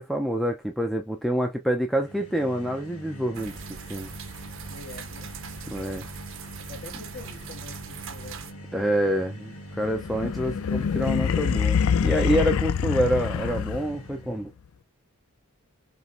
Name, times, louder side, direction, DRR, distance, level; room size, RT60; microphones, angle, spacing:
voice 1, 0.0-3.6 3.9-4.1 5.7-6.1 8.7-14.5, equal, ahead, 0.4 m, -27 dB
sound 1, 1.9-14.5, equal, 90° left, 1.6 m, -43 dB
sound 2, 3.3-8.5, right 7 dB, 60° right, 0.6 m, -41 dB
voice 2, 4.7-5.4 6.7-8.7, left 3 dB, 45° left, 1.5 m, -45 dB
sound 3, 9.9-14.1, left 7 dB, 70° left, 0.4 m, -25 dB
5.0 x 3.1 x 2.5 m
head